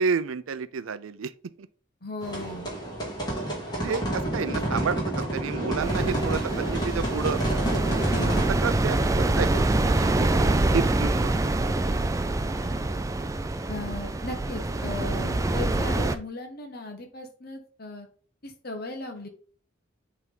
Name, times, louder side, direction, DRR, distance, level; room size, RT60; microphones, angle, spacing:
voice 1, 0.0-1.3 1.6-1.7 3.8-7.4 8.5-10.3 10.7-11.3, right 5 dB, 90° right, 0.5 m, -30 dB
voice 2, 2.0-2.7 8.1-8.4 13.7-18.1 18.4-19.3, left 2 dB, 50° left, 1.2 m, -37 dB
sound 1, 2.2-8.5, right 1 dB, 20° left, 2.5 m, -29 dB
sound 2, 5.8-16.2, right 2 dB, 15° right, 0.3 m, -25 dB
8.2 x 3.5 x 3.7 m
head